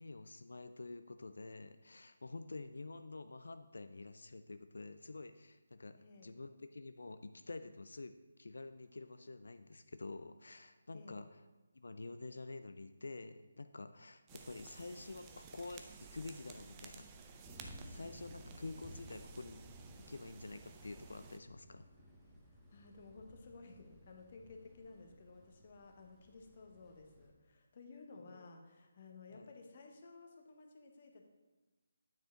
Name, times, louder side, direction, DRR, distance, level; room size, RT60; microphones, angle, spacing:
voice 1, 0.0-11.4 11.7-15.8 16.1-17.1 17.8-19.6 20.1-21.9 28.3-28.5 29.3-29.5, left 3 dB, 70° left, 10 dB, 0.4 m, -48 dB
voice 2, 6.0-6.4 10.9-11.2 17.8-18.1 22.7-31.3, left 3 dB, 45° left, 3 dB, 1.1 m, -56 dB
sound 1, 14.3-21.4, right 5 dB, 20° right, 0.5 m, -55 dB
sound 2, 17.4-27.3, equal, 5° right, 1.2 m, -57 dB
9.1 x 5.1 x 3.8 m, 1.1 s
figure-of-eight pair, 155°, 0 cm